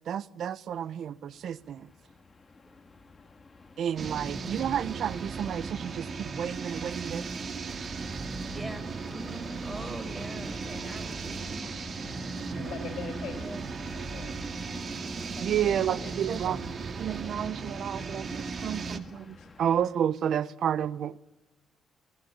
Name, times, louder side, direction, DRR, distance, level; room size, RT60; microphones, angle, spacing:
voice 1, 0.1-1.9 3.8-7.2 15.4-16.6 17.0-21.2, right 9 dB, 65° right, 0.9 m, -31 dB
Train, 0.9-19.9, left 4 dB, 30° left, 2.4 m, -50 dB
sound 1, 4.0-19.0, right 4 dB, 45° right, 2.3 m, -36 dB
voice 2, 8.5-11.7 13.3-13.6, right 1 dB, 15° right, 5.2 m, -43 dB
voice 3, 12.5-13.6 13.9-14.4 15.3-16.1 18.3-18.4 19.4-19.5, left 7 dB, 70° left, 5.2 m, -43 dB
29.5 x 19.5 x 8.8 m
cardioid pair, 90°, 0 cm